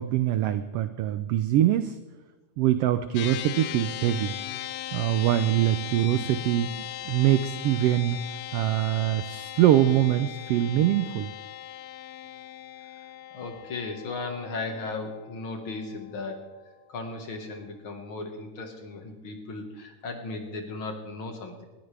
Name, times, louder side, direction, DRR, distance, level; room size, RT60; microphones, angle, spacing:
voice 1, 0.0-2.0 2.6-4.3 4.9-8.2 8.5-11.3, right 12 dB, 85° right, 11 dB, 1.3 m, -24 dB
sound 1, 3.1-16.7, left 13 dB, 75° left, 1.6 m, -39 dB
voice 2, 13.3-16.5 16.9-21.6, left 3 dB, 50° left, 4 dB, 2.1 m, -36 dB
20.0 x 14.5 x 3.4 m, 1.2 s
omnidirectional pair, 3.4 m